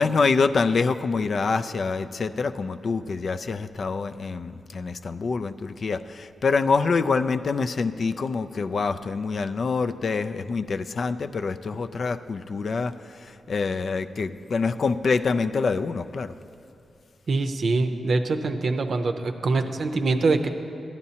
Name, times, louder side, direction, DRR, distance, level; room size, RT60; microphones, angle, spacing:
voice 1, 0.0-16.3, left 4 dB, 60° left, 9 dB, 0.3 m, -26 dB
voice 2, 17.3-20.5, right 3 dB, 65° right, 7 dB, 0.6 m, -24 dB
14.5 x 10.5 x 2.8 m, 2.5 s
cardioid pair, 55°, 0 cm